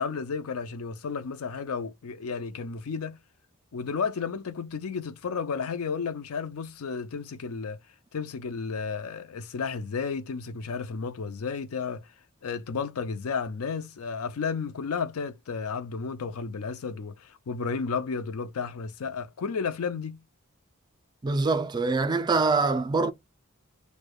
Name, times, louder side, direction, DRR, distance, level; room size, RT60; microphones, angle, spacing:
voice 1, 0.0-3.2 3.7-7.8 8.1-12.1 12.4-20.2, left 5 dB, 80° left, 0.5 m, -32 dB
voice 2, 21.2-23.1, right 3 dB, 20° right, 0.3 m, -24 dB
6.4 x 2.2 x 2.3 m
head